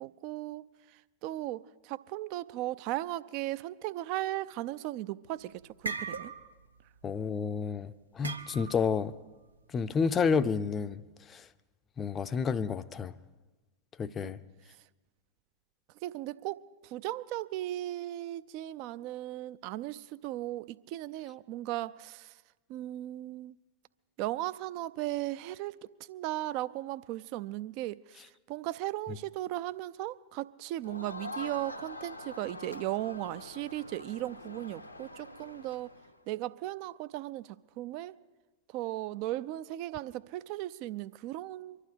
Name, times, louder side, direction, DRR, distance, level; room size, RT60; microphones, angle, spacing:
voice 1, 0.0-6.3 14.2-14.3 16.0-22.4 22.7-23.6 24.2-35.9 36.3-38.2 38.7-41.8, right 15 dB, 45° right, 0.4 m, -37 dB
sound 1, 5.3-7.2 8.2-8.9, right 4 dB, 80° right, 0.7 m, -38 dB
voice 2, 7.0-9.1 9.7-11.0 11.3-11.4 12.0-13.1 14.0-14.4, left 5 dB, 25° left, 0.5 m, -30 dB
Crowd, 30.8-36.2, left 2 dB, 85° left, 0.9 m, -45 dB
24.0 x 11.5 x 5.1 m
figure-of-eight pair, 90°, 0 cm